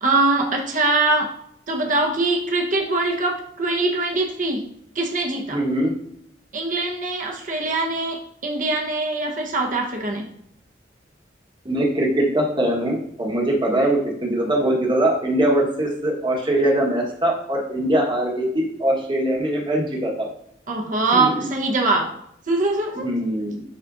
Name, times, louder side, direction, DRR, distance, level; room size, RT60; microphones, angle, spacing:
voice 1, 0.0-1.3 1.7-4.6 4.9-5.6 6.5-10.3 20.7-22.1 22.5-23.1, right 2 dB, 45° right, 1 dB, 1.1 m, -22 dB
voice 2, 5.5-5.9 11.6-20.3 21.1-21.3 23.0-23.6, right 1 dB, 25° right, -1 dB, 1.4 m, -22 dB
11.0 x 4.2 x 2.6 m, 0.71 s
head